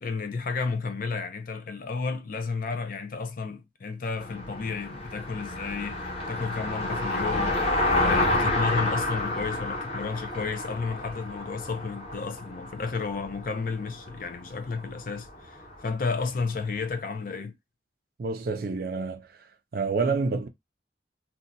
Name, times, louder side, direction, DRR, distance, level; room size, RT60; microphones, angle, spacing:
voice 1, 0.0-7.6 8.0-17.6, left 4 dB, 50° left, 0.5 m, -32 dB
Car passing by, 4.2-16.5, left 2 dB, 35° left, 1.2 m, -30 dB
voice 2, 18.2-19.3 19.7-20.5, right 4 dB, 55° right, 0.4 m, -28 dB
2.7 x 2.2 x 3.8 m
head